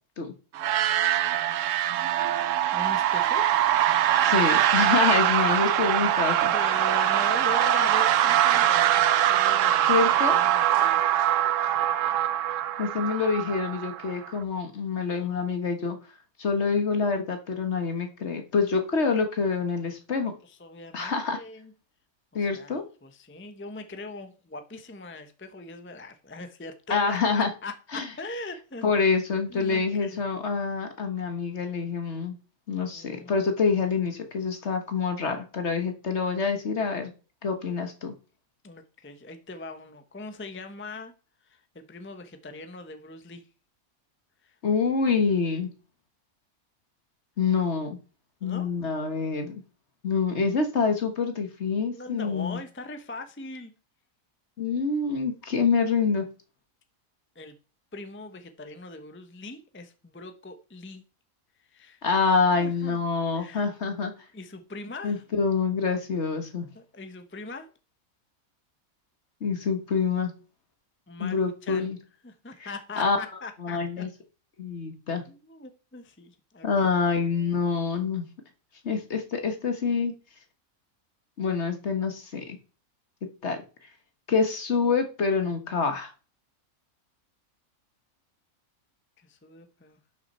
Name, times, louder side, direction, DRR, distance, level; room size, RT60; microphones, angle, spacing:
sound 1, 0.5-14.3, right 11 dB, 70° right, 0.9 m, -23 dB
voice 1, 2.4-3.5 5.4-5.7 6.5-11.0 11.3-12.5 15.1-15.3 20.4-21.7 22.3-27.8 28.2-29.1 29.5-30.2 32.8-33.4 38.6-41.1 41.4-43.5 44.4-44.6 48.4-48.9 51.9-53.7 57.3-57.5 57.9-61.0 61.6-62.0 62.6-63.0 63.3-63.7 64.3-65.2 66.7-67.7 71.1-71.9 72.2-73.8 75.3-76.9 89.2-90.0, left 2 dB, 10° left, 8 dB, 0.8 m, -41 dB
voice 2, 4.2-6.5 9.9-10.4 12.8-16.0 16.4-20.3 20.9-21.4 22.3-22.8 26.9-27.5 27.9-28.0 28.8-32.3 32.7-37.1 37.4-38.1 44.6-45.7 47.4-48.0 48.4-49.6 50.0-52.6 54.6-56.2 62.0-64.1 65.0-66.7 69.4-70.3 71.2-72.0 73.0-73.2 73.6-74.1 74.6-75.2 76.6-78.3 78.8-80.1 81.4-82.6 83.4-83.6 84.3-86.1, left 5 dB, 50° left, 6 dB, 1.6 m, -26 dB
11.5 x 6.1 x 4.3 m, 0.35 s
omnidirectional pair, 1.5 m